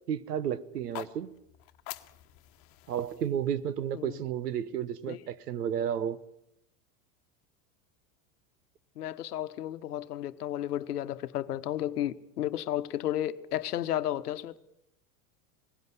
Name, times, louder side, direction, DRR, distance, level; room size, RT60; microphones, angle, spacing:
voice 1, 0.0-1.3 2.9-6.2, right 9 dB, 90° right, 1.2 m, -32 dB
sound 1, 0.7-4.9, left 18 dB, 50° left, 1.2 m, -48 dB
voice 2, 9.0-14.6, left 12 dB, 85° left, 1.1 m, -33 dB
19.0 x 16.0 x 9.5 m
hypercardioid pair, 100°, 45 cm